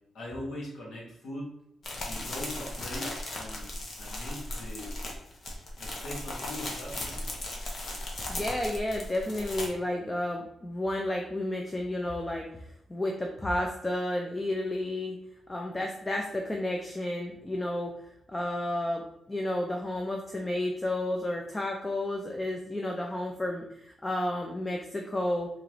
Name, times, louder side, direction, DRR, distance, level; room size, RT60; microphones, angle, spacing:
voice 1, 0.1-1.5 2.0-3.7 4.0-4.9 5.8-7.3, left 1 dB, 70° left, -5 dB, 1.5 m, -41 dB
sound 1, 1.8-9.7, left 1 dB, 45° left, 0.8 m, -37 dB
voice 2, 8.3-15.2 15.5-17.9 18.3-25.5, left 1 dB, 15° left, 1 dB, 0.4 m, -32 dB
3.6 x 2.9 x 3.1 m, 0.80 s
wide cardioid pair, 165°, 0 cm